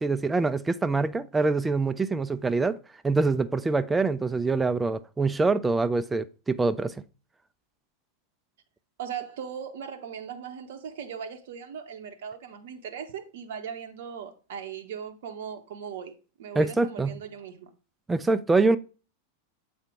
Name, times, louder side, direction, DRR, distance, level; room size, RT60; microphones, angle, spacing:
voice 1, 0.0-2.8 3.0-6.9 16.6-17.2 18.1-18.8, right 3 dB, 10° right, 0.4 m, -25 dB
voice 2, 9.0-17.7, right 8 dB, 55° right, 0.7 m, -38 dB
7.4 x 4.3 x 3.5 m
figure-of-eight pair, 90°, 0 cm